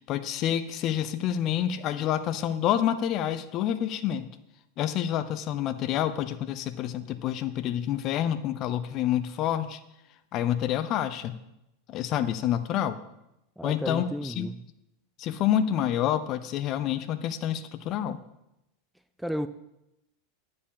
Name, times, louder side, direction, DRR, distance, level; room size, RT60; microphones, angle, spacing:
voice 1, 0.0-4.3 4.8-9.8 10.3-11.4 11.9-13.0 13.6-14.5 15.2-18.2, left 10 dB, 40° left, 0.6 m, -28 dB
voice 2, 13.6-14.6 19.2-19.5, equal, ahead, 0.4 m, -32 dB
10.0 x 4.8 x 7.0 m
figure-of-eight pair, 85°, 0 cm